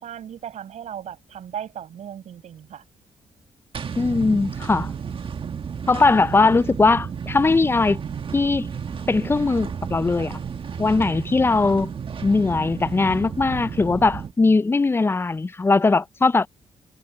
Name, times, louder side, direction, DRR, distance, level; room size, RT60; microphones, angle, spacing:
voice 1, 0.0-2.8, right 9 dB, 75° right, 6.5 m, -36 dB
sound 1, 3.7-14.3, right 7 dB, 50° right, 1.6 m, -32 dB
voice 2, 4.0-4.9 5.9-8.0 8.3-8.7 9.1-10.4 10.8-11.9 12.2-16.5, left 3 dB, 20° left, 0.4 m, -20 dB
cardioid pair, 80°, 12 cm